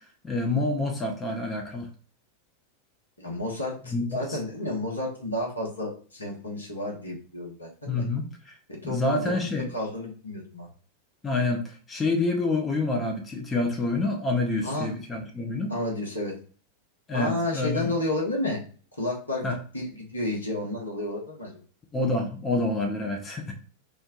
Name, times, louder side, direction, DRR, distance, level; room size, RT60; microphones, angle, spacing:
voice 1, 0.2-1.9 3.9-4.0 4.3-4.4 7.9-8.5 8.8-9.7 11.2-15.7 17.1-17.9 19.4-19.6 21.9-23.5, left 2 dB, 15° left, 2 dB, 0.7 m, -27 dB
voice 2, 3.2-8.0 8.7-9.3 9.7-10.7 14.6-14.9 15.7-16.3 17.1-18.6 19.0-21.6, left 1 dB, 80° left, -1 dB, 1.0 m, -31 dB
3.1 x 2.1 x 3.8 m, 0.40 s
figure-of-eight pair, 90°, 0 cm